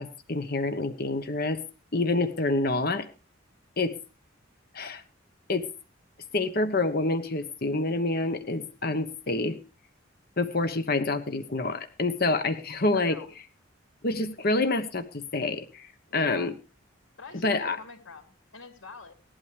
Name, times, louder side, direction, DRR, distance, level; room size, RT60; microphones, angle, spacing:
voice 1, 0.0-1.6 1.9-3.1 3.8-3.9 4.7-5.0 5.5-5.6 6.3-9.6 10.4-13.2 14.0-16.5 17.4-17.8, left 2 dB, 50° left, 8 dB, 1.2 m, -27 dB
voice 2, 12.9-13.3 16.1-16.5 17.2-19.1, left 4 dB, 80° left, 4 dB, 3.9 m, -44 dB
18.0 x 12.0 x 3.4 m, 0.34 s
head